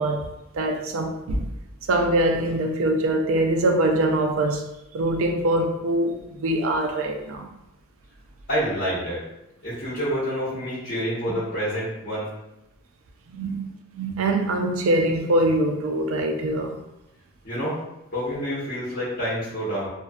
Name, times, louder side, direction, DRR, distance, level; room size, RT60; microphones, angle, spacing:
voice 1, 0.0-1.5 1.9-4.6 4.9-7.5 13.3-13.6 14.0-16.8, right 1 dB, 85° right, 0.4 m, -23 dB
voice 2, 8.5-9.2 9.6-12.3 13.4-13.5 17.4-17.8 18.1-19.9, equal, 45° left, 0.8 m, -28 dB
2.6 x 2.1 x 2.3 m
head